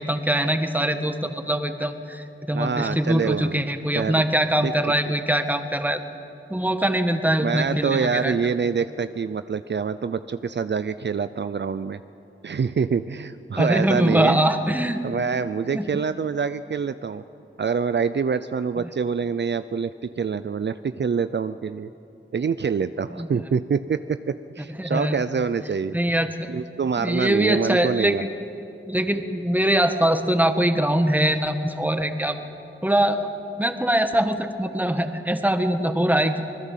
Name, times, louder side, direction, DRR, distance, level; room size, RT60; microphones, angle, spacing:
voice 1, 0.0-6.0 6.5-8.3 13.6-15.0 15.7-15.8 23.1-23.3 24.8-25.2 25.9-26.5 27.0-28.3 28.9-32.4 32.8-33.3 33.6-36.4, right 1 dB, 10° right, 7 dB, 1.5 m, -23 dB
voice 2, 2.5-3.6 3.9-4.2 4.6-4.7 7.4-12.0 12.4-14.5 15.0-17.2 17.6-21.9 22.3-26.2 26.5-28.3, right 6 dB, 55° right, 12 dB, 0.5 m, -26 dB
25.0 x 20.5 x 7.5 m, 2.8 s
wide cardioid pair, 85°, 21 cm